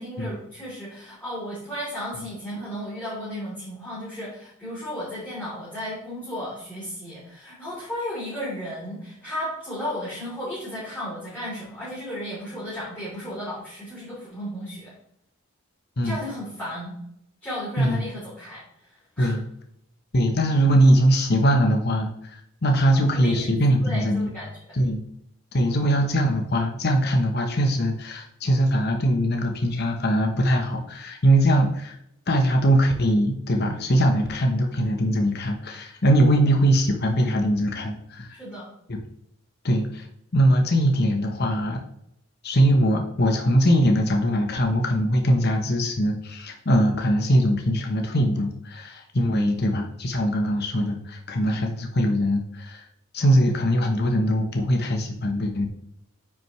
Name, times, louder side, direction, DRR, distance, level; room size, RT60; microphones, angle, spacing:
voice 1, 0.0-14.9 16.0-16.9 17.4-19.3 23.1-24.5 38.3-38.6 49.2-49.6, equal, 5° left, -10 dB, 3.2 m, -34 dB
voice 2, 20.1-24.3 24.7-25.0 25.5-32.0 32.3-38.3 39.6-40.0 40.3-41.8 42.4-52.8 53.1-55.7, equal, 50° left, 3 dB, 1.0 m, -21 dB
9.2 x 6.0 x 3.2 m, 0.75 s
head